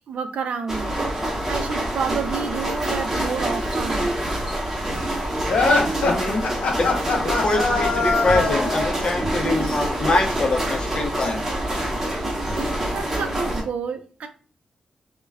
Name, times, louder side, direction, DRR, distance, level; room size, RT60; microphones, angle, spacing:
voice 1, 0.1-0.9 1.5-4.1 12.9-14.3, right 6 dB, 75° right, 6 dB, 0.4 m, -29 dB
sound 1, 0.7-13.6, right 1 dB, 20° right, 0.7 m, -26 dB
sound 2, 5.5-9.0, left 3 dB, 90° left, 0.6 m, -22 dB
voice 2, 6.0-6.4 6.8-6.9 7.4-11.4, left 2 dB, 40° left, 3 dB, 0.5 m, -24 dB
2.2 x 2.2 x 3.3 m, 0.38 s
wide cardioid pair, 145°, 2 cm